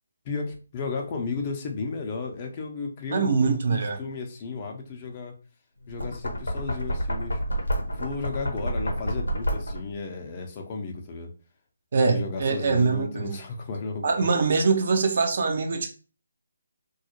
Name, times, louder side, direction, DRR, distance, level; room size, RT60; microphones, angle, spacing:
voice 1, 0.2-5.3 5.9-7.4 7.9-11.3 12.1-14.3, left 4 dB, 30° left, 0.5 m, -34 dB
voice 2, 3.1-4.0 11.9-13.4 14.0-15.9, right 4 dB, 55° right, 0.5 m, -23 dB
Knock, 5.8-10.0, equal, 85° left, 0.6 m, -29 dB
2.2 x 2.0 x 2.8 m
figure-of-eight pair, 150°, 0 cm